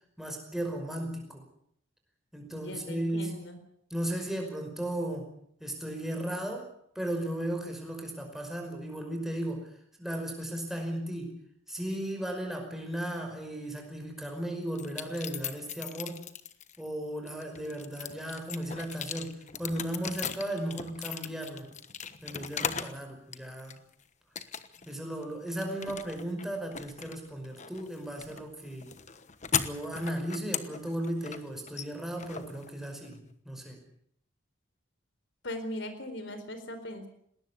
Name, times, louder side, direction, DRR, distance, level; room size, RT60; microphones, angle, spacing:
voice 1, 0.2-1.4 2.3-3.4 3.9-5.3 5.6-6.7 6.9-9.7 10.0-11.4 11.7-16.2 16.8-21.7 22.2-23.8 24.8-28.9 29.5-33.2 33.4-33.8, right 1 dB, ahead, 2 dB, 5.3 m, -35 dB
voice 2, 2.5-3.6 35.4-37.1, left 1 dB, 65° left, 9 dB, 4.4 m, -39 dB
sound 1, 14.8-16.8 17.3-23.0 23.3-23.9 24.4-25.0 25.2-33.2, left 7 dB, 35° left, 1.2 m, -38 dB
20.0 x 18.5 x 8.5 m, 0.70 s
head